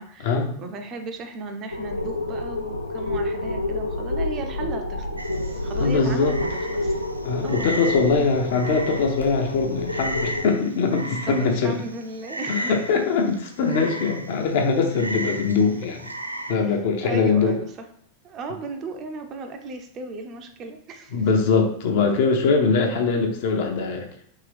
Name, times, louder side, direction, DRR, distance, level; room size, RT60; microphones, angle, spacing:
voice 1, 0.0-6.9 7.4-7.7 11.3-12.7 16.6-17.9 18.2-21.2, right 3 dB, 35° right, 5 dB, 0.5 m, -36 dB
sound 1, 1.7-10.4, left 2 dB, 85° left, 0.4 m, -29 dB
Frog, 5.2-16.5, right 1 dB, 85° right, 0.3 m, -35 dB
voice 2, 5.8-6.4 7.2-11.7 12.5-16.0 16.5-17.6 21.1-24.1, left 4 dB, 50° left, 3 dB, 0.7 m, -22 dB
3.7 x 2.9 x 3.3 m, 0.68 s
figure-of-eight pair, 90°, 0 cm